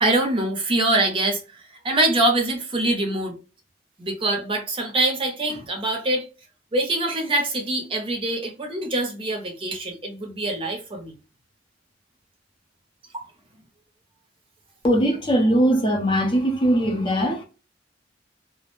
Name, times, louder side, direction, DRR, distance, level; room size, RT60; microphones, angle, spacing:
voice 1, 0.0-3.3 4.0-6.2 6.7-11.1 13.1-13.3, right 2 dB, 30° right, 0.6 m, -24 dB
voice 2, 14.8-17.4, equal, 25° left, 0.6 m, -20 dB
2.4 x 2.0 x 2.9 m
head